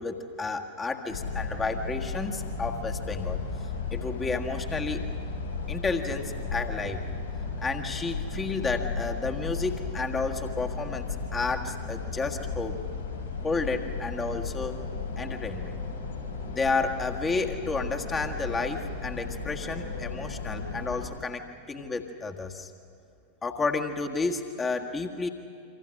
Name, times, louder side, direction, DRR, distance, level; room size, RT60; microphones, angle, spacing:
voice 1, 0.0-3.4 3.9-5.1 5.7-7.1 7.6-11.1 11.3-12.8 13.4-14.8 15.2-15.8 16.4-22.7 23.4-25.3, left 3 dB, 15° left, 3 dB, 1.7 m, -31 dB
sound 1, 1.1-21.1, left 4 dB, 75° left, 5.8 m, -35 dB
28.5 x 25.5 x 6.4 m, 2.6 s
figure-of-eight pair, 90°, 0 cm